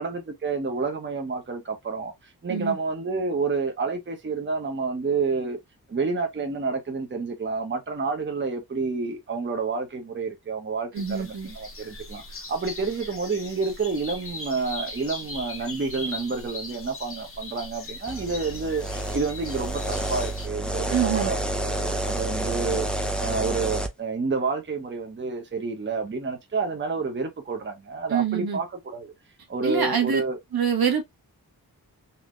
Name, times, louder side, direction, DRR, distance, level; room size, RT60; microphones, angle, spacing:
voice 1, 0.0-5.6 5.9-22.9 23.2-29.1 29.5-30.4, right 4 dB, 30° right, 0.8 m, -29 dB
voice 2, 10.9-11.5 20.9-21.3 28.1-28.6 29.6-30.2 30.5-31.0, right 7 dB, 75° right, 1.2 m, -25 dB
sound 1, 11.0-20.5, left 2 dB, 35° left, 1.0 m, -39 dB
sound 2, 18.1-23.9, right 1 dB, ahead, 0.6 m, -29 dB
3.5 x 2.7 x 2.4 m
wide cardioid pair, 85°, 37 cm